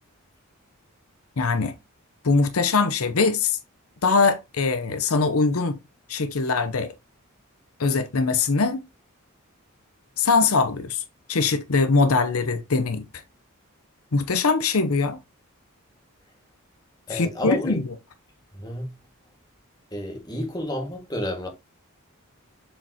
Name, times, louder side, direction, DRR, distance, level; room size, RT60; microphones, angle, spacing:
voice 1, 1.4-1.7 2.2-3.6 4.0-5.8 6.1-6.9 7.8-8.9 10.2-11.0 11.3-13.0 14.1-15.2 17.1-17.8, left 4 dB, 75° left, 0.8 m, -22 dB
voice 2, 17.1-17.8 18.5-18.9 19.9-21.5, left 1 dB, 20° left, 1.8 m, -30 dB
7.4 x 4.9 x 2.8 m
head